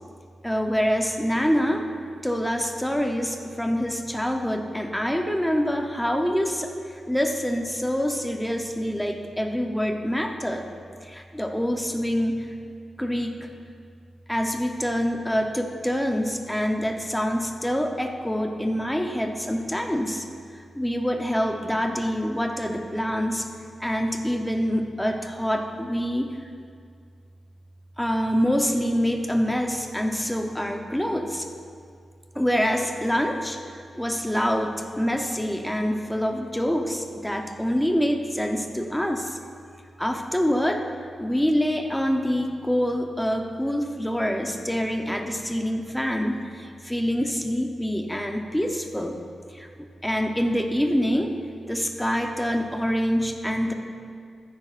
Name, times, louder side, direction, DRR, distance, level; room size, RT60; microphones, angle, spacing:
voice 1, 0.4-1.9 2.2-10.7 11.0-12.5 13.0-13.5 14.3-20.2 20.5-23.5 23.8-26.3 28.0-31.5 32.3-39.4 40.0-40.8 41.2-49.2 49.5-49.7 50.0-51.3 51.6-53.7, equal, 5° left, 3 dB, 0.7 m, -26 dB
15.0 x 9.7 x 2.5 m, 2.2 s
wide cardioid pair, 130°, 0 cm